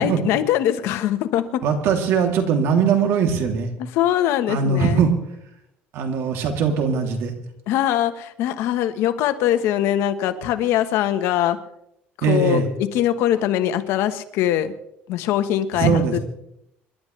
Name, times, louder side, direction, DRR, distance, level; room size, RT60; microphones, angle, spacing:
voice 1, 0.0-1.6 3.9-5.0 7.7-11.6 12.3-14.7 15.1-16.2, left 11 dB, 75° left, 10 dB, 1.2 m, -22 dB
voice 2, 1.6-3.7 4.5-5.1 5.9-7.3 12.2-12.6 15.7-16.2, right 6 dB, 70° right, 3 dB, 3.0 m, -20 dB
28.0 x 11.5 x 3.3 m, 0.80 s
cardioid pair, 125°, 4 cm